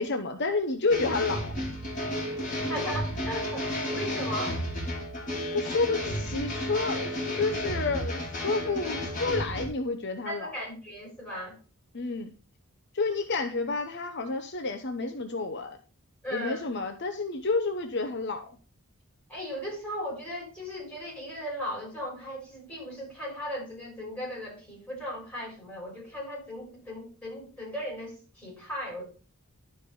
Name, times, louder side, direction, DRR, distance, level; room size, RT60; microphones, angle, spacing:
voice 1, 0.0-1.6 5.5-10.6 11.9-12.3 12.9-15.8 16.3-18.6, left 3 dB, 50° left, 6 dB, 0.9 m, -30 dB
sound 1, 0.9-9.6, left 1 dB, 35° left, 3.6 m, -32 dB
voice 2, 2.7-4.7 10.3-11.6 16.2-16.6 19.3-29.1, equal, 5° left, -4 dB, 5.6 m, -37 dB
11.5 x 5.2 x 5.2 m, 0.37 s
head